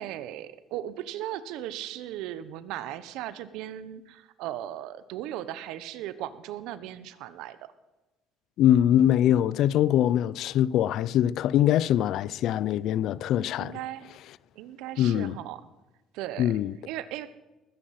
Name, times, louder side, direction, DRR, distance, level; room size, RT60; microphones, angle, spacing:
voice 1, 0.0-7.7 13.6-14.1 14.5-15.6 16.1-16.5 16.8-17.3, right 12 dB, 80° right, 1.0 m, -37 dB
voice 2, 8.6-13.8 15.0-15.4 16.4-16.7, left 11 dB, 70° left, 0.5 m, -23 dB
20.0 x 10.0 x 5.9 m
supercardioid pair, 85°, 0 cm